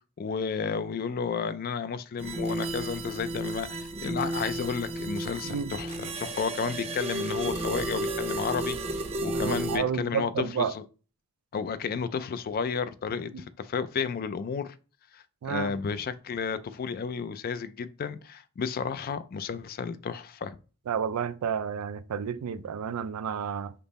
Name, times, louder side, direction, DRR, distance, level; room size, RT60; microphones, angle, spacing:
voice 1, 0.2-10.8 11.5-14.7 15.1-20.6, left 6 dB, 40° left, 0.3 m, -32 dB
sound 1, 2.2-9.8, right 2 dB, 30° right, 0.5 m, -33 dB
voice 2, 9.3-10.7 13.3-13.4 15.4-15.7 20.9-23.7, right 7 dB, 85° right, 0.4 m, -31 dB
5.2 x 2.0 x 4.0 m
head